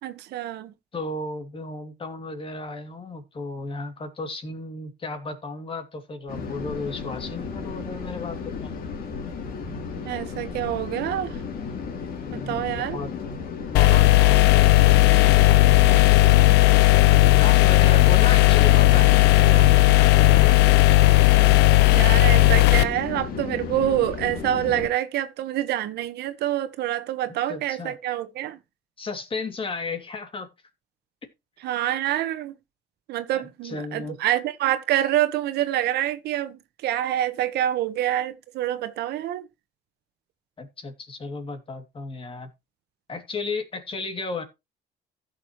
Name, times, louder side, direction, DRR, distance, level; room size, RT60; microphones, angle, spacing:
voice 1, 0.0-0.7 10.0-11.4 12.3-13.0 21.5-21.6 21.9-28.6 31.6-32.6 33.1-39.5, right 12 dB, 75° right, 1.4 m, -26 dB
voice 2, 0.9-8.7 12.2-13.1 13.7-16.6 17.3-20.9 27.2-28.0 29.0-30.5 33.3-34.2 40.6-42.5 43.1-44.4, left 3 dB, 30° left, 2.8 m, -34 dB
sound 1, 6.3-24.9, left 5 dB, 60° left, 3.4 m, -34 dB
sound 2, 13.7-22.8, left 17 dB, 90° left, 0.8 m, -15 dB
15.5 x 6.7 x 3.2 m
cardioid pair, 110°, 17 cm